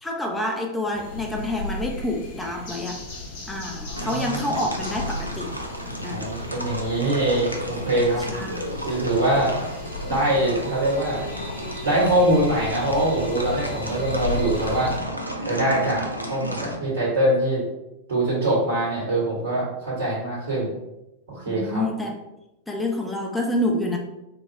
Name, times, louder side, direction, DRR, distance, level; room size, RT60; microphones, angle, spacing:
voice 1, 0.0-3.0 3.5-5.5 6.0-6.3 8.3-9.0 21.5-22.2 22.7-24.0, left 1 dB, 5° left, 1 dB, 0.7 m, -28 dB
sound 1, 0.9-15.0, left 2 dB, 50° left, 1.0 m, -35 dB
voice 2, 3.8-4.5 6.0-8.2 8.8-9.5 10.0-11.3 11.8-15.0 15.4-17.6 18.1-20.7 21.3-21.8, right 1 dB, 65° right, -7 dB, 1.4 m, -23 dB
sound 2, 3.9-16.8, equal, 90° right, 0.4 m, -33 dB
4.2 x 2.3 x 3.3 m, 0.92 s
figure-of-eight pair, 90°, 0 cm